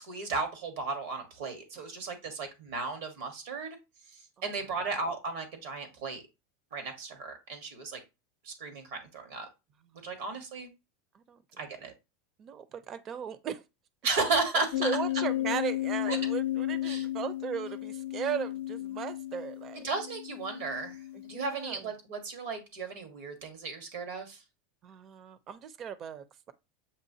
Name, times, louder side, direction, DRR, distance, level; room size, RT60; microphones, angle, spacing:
voice 1, 0.0-3.8 4.4-6.2 6.7-8.0 8.4-9.5 10.0-10.7 11.6-11.9 14.0-14.9 16.1-16.2 16.8-17.0 19.8-21.0 21.2-24.4, right 4 dB, 75° right, 1.3 m, -34 dB
voice 2, 12.4-13.6 14.5-19.9 21.1-21.9 24.8-26.5, right 8 dB, 40° right, 0.6 m, -37 dB
sound 1, 14.7-21.8, left 14 dB, 85° left, 0.5 m, -34 dB
7.4 x 2.5 x 2.8 m
hypercardioid pair, 105°, 0 cm